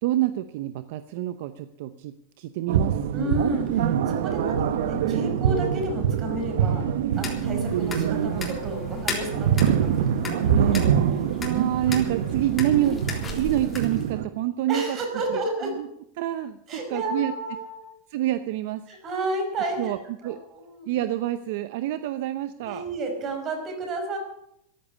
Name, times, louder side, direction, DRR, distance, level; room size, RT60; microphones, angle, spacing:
voice 1, 0.0-3.0 4.4-4.8 11.4-13.0 13.3-15.0 15.3-15.9 16.2-16.6 16.9-17.3 18.1-18.8 19.8-20.4 20.9-22.8, right 13 dB, 65° right, 12 dB, 0.7 m, -27 dB
sound 1, 2.7-14.3, right 8 dB, 80° right, 1.2 m, -25 dB
voice 2, 3.1-6.9 7.2-10.8 14.7-15.7 16.7-17.9 18.9-19.9 20.2-21.0 22.6-24.2, right 1 dB, 30° right, 3 dB, 5.3 m, -31 dB
sound 2, 7.1-14.1, left 3 dB, 15° left, 3.6 m, -36 dB
14.5 x 11.0 x 8.5 m, 0.76 s
supercardioid pair, 150°, 0 cm